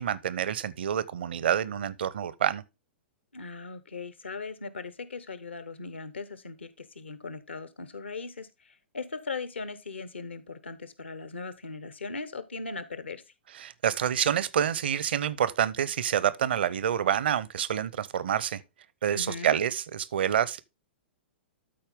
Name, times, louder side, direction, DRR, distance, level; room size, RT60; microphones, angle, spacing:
voice 1, 0.0-2.6 13.5-18.6 19.0-20.6, right 9 dB, 65° right, 0.7 m, -27 dB
voice 2, 3.3-13.2 19.1-19.6, left 4 dB, 80° left, 1.1 m, -39 dB
12.5 x 4.4 x 3.6 m
figure-of-eight pair, 110°, 6 cm